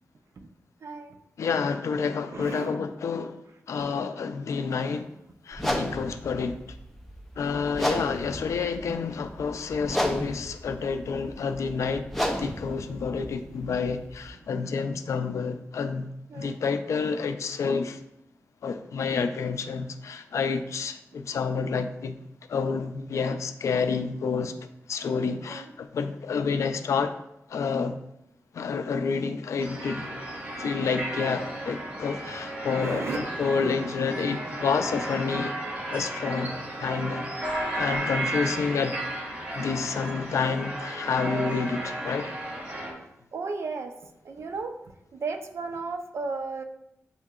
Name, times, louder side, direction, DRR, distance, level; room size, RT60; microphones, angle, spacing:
voice 1, 0.8-1.2 2.3-2.8 7.9-8.0 8.3-8.4 8.9-9.0 16.3-16.6 21.1-21.2 25.5-25.7 31.9-32.0 32.7-33.5 37.7-38.1 43.3-44.8 45.1-46.6, right 4 dB, 65° right, 0.5 m, -35 dB
voice 2, 1.4-3.4 3.7-5.1 5.5-6.6 7.4-12.1 12.4-16.1 16.3-18.0 18.6-22.2 22.5-24.5 24.9-27.1 27.5-28.0 28.5-30.1 30.6-35.5 35.9-37.3 37.8-39.0 39.5-42.3, left 5 dB, 90° left, 0.4 m, -29 dB
sound 1, 5.5-14.3, equal, 5° left, 0.5 m, -33 dB
sound 2, 29.6-42.9, right 1 dB, 30° right, 1.0 m, -34 dB
8.1 x 2.7 x 2.4 m
wide cardioid pair, 160°, 5 cm